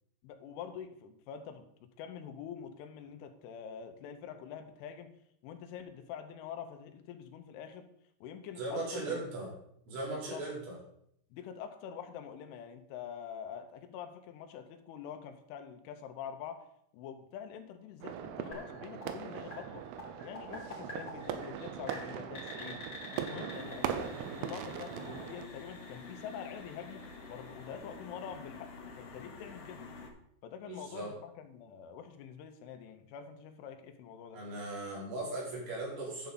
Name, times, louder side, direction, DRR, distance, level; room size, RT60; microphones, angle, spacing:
voice 1, 0.2-5.2 5.4-7.9 8.2-9.2 10.1-10.5 11.3-16.7 16.9-19.8 20.2-22.9 23.1-28.7 29.0-29.9 30.4-34.4, left 8 dB, 85° left, 7 dB, 3.4 m, -45 dB
voice 2, 8.6-9.5 9.9-10.8 30.7-31.1 34.3-36.3, right 2 dB, 70° right, -5 dB, 5.6 m, -38 dB
sound 1, 18.0-25.5, right 9 dB, 85° right, 3.1 m, -40 dB
sound 2, 18.5-28.3, left 2 dB, 35° left, 1.8 m, -50 dB
sound 3, 23.5-30.1, left 4 dB, 70° left, 2.1 m, -49 dB
10.5 x 7.1 x 4.0 m, 0.70 s
omnidirectional pair, 5.5 m